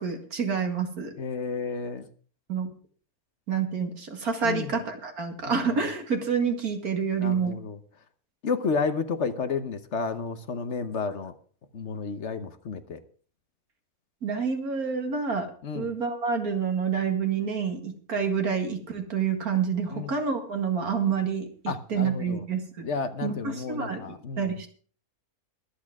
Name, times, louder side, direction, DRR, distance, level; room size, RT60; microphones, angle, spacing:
voice 1, 0.0-1.1 2.5-2.7 3.5-7.6 14.2-21.5 21.9-22.9 23.2-24.7, right 6 dB, 80° right, 5 dB, 2.4 m, -28 dB
voice 2, 1.2-2.1 4.4-4.8 5.5-5.7 7.2-7.8 8.4-11.3 11.7-13.0 15.6-15.9 19.9-20.1 21.7-22.4 22.8-24.5, left 5 dB, 55° left, 10 dB, 1.2 m, -31 dB
23.0 x 8.7 x 3.6 m, 0.43 s
omnidirectional pair, 1.5 m